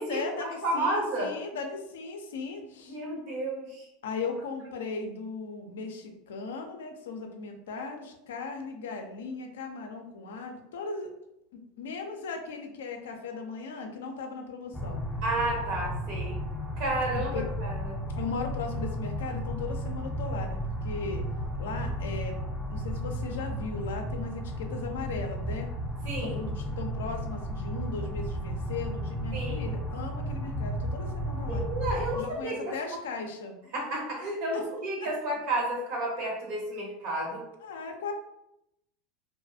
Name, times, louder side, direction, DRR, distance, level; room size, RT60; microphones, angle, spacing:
voice 1, 0.1-3.0 4.0-11.1 11.5-15.0 17.2-17.5 18.2-21.2 21.6-22.4 22.7-25.7 26.2-31.6 32.1-33.6 34.5-34.6 37.6-38.1, left 4 dB, 75° left, 4 dB, 0.4 m, -37 dB
voice 2, 0.6-1.3 2.9-3.9 15.2-16.4 16.8-17.3 17.6-18.0 26.0-26.4 29.3-29.6 31.5-32.7 33.7-37.4, right 1 dB, 60° right, -1 dB, 1.0 m, -31 dB
sound 1, 14.7-32.2, equal, 10° left, 0.4 m, -34 dB
2.6 x 2.3 x 2.6 m, 0.83 s
hypercardioid pair, 80°, 0 cm